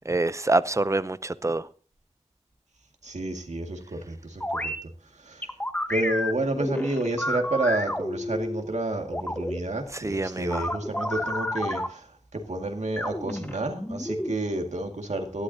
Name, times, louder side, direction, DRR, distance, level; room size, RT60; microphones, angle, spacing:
voice 1, 0.0-1.7 9.9-10.6, right 2 dB, 25° right, 0.6 m, -26 dB
voice 2, 3.0-4.7 5.2-5.5 5.9-15.4, right 2 dB, 80° right, 2.1 m, -30 dB
sound 1, 4.4-4.8 5.4-8.6 9.1-9.6 10.5-11.9 13.0-14.3, left 1 dB, 15° left, 1.2 m, -30 dB
18.0 x 12.0 x 2.8 m
wide cardioid pair, 60°, 12 cm